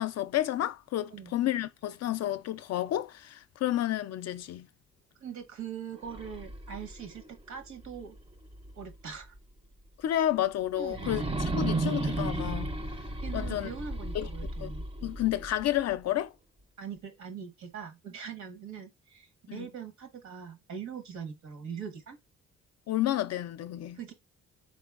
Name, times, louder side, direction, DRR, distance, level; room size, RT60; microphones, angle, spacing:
voice 1, 0.0-4.7 10.0-11.3 11.5-12.7 13.3-13.7 14.1-14.3 14.6-14.7 15.0-16.3 19.5-19.7 22.9-24.0, left 13 dB, 60° left, 0.5 m, -30 dB
voice 2, 5.2-8.2 8.7-9.4 10.7-11.1 13.2-14.8 16.8-22.2 23.9-24.1, right 7 dB, 70° right, 1.3 m, -42 dB
sound 1, 6.0-8.9 9.4-9.5 10.9-15.9, right 2 dB, 20° right, 0.6 m, -34 dB
4.1 x 3.8 x 2.4 m
cardioid pair, 90°, 30 cm